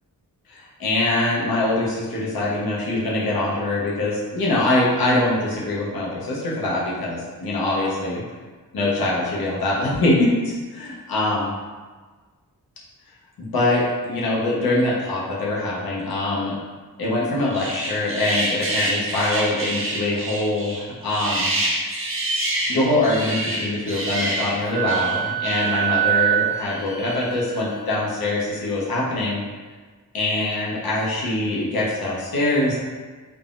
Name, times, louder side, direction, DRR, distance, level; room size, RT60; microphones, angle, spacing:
voice 1, 0.5-8.2 8.7-10.6 11.1-11.5 13.4-16.6 17.0-21.6 22.7-29.4 30.1-32.8, left 2 dB, 80° left, -5 dB, 0.8 m, -23 dB
sound 1, 17.5-26.0 26.6-27.3, right 1 dB, 35° right, 0.5 m, -27 dB
Wind instrument woodwind instrument, 24.6-28.1, right 12 dB, 10° left, 0.5 m, -25 dB
3.4 x 2.1 x 2.5 m, 1.4 s
wide cardioid pair, 130°, 36 cm